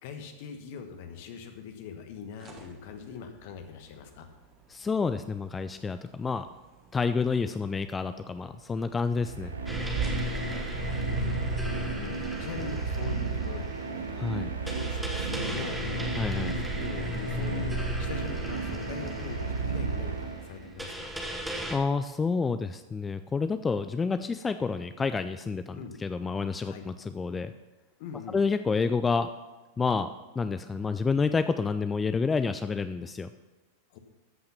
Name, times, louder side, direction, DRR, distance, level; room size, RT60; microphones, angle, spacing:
voice 1, 0.0-4.3 10.4-11.6 12.0-16.1 16.5-21.2 25.7-25.9 26.6-26.8 28.0-28.4 33.9-34.0, left 6 dB, 50° left, 6 dB, 1.4 m, -42 dB
sound 1, 2.2-11.4, right 5 dB, 25° right, 1.6 m, -43 dB
voice 2, 4.7-6.5 6.9-9.6 14.1-14.5 16.2-16.6 21.7-27.5 28.3-29.3 29.8-30.1 30.4-33.3, left 4 dB, 15° left, 11 dB, 0.4 m, -29 dB
sound 2, 9.1-20.8, right 5 dB, 75° right, 1.0 m, -34 dB
sound 3, 9.7-21.8, left 1 dB, 5° right, 1.4 m, -36 dB
13.5 x 5.7 x 5.7 m, 1.2 s
figure-of-eight pair, 90°, 0 cm